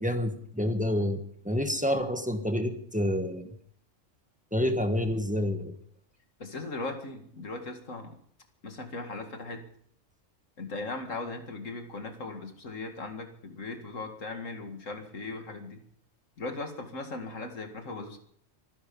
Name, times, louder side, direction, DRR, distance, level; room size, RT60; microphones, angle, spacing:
voice 1, 0.0-3.6 4.5-5.7, left 1 dB, 5° right, 6 dB, 1.4 m, -28 dB
voice 2, 6.4-8.2 8.6-9.7 10.6-15.8 16.4-18.2, left 3 dB, 85° left, 5 dB, 2.4 m, -38 dB
24.5 x 10.5 x 5.4 m, 0.65 s
omnidirectional pair, 1.3 m